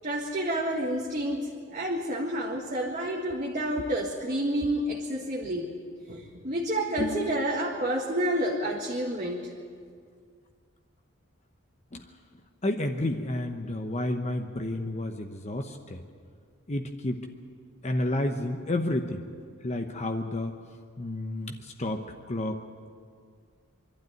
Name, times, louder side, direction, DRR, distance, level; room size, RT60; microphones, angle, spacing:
voice 1, 0.0-5.7 6.1-9.5, right 1 dB, 35° right, -2 dB, 1.7 m, -29 dB
voice 2, 12.6-16.0 16.7-17.3 17.8-19.3 19.6-20.5 21.0-22.6, left 1 dB, 30° left, 4 dB, 0.9 m, -31 dB
24.5 x 12.0 x 9.4 m, 2.1 s
head